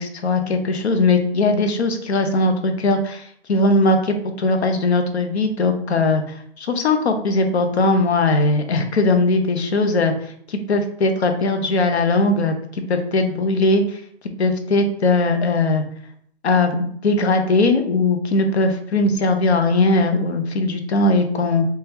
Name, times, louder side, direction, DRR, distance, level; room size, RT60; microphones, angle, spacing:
voice 1, 0.0-6.2 6.6-10.1 10.5-14.0 14.4-15.8 16.4-21.7, left 2 dB, 75° left, 6 dB, 0.6 m, -19 dB
2.8 x 2.2 x 3.4 m, 0.64 s
hypercardioid pair, 175°, 33 cm